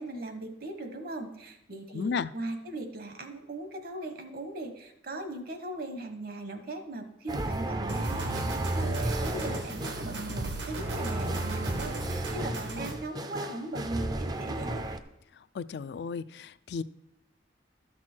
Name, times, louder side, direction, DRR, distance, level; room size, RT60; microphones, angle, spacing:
voice 1, 0.0-14.8, right 2 dB, 55° right, 6 dB, 1.2 m, -39 dB
voice 2, 1.9-2.3 15.5-16.8, left 5 dB, 60° left, 14 dB, 0.3 m, -33 dB
sound 1, 7.3-15.0, right 1 dB, 20° right, 0.5 m, -33 dB
sound 2, 7.9-12.9, right 2 dB, 75° right, 1.4 m, -37 dB
13.0 x 6.1 x 4.4 m, 0.82 s
head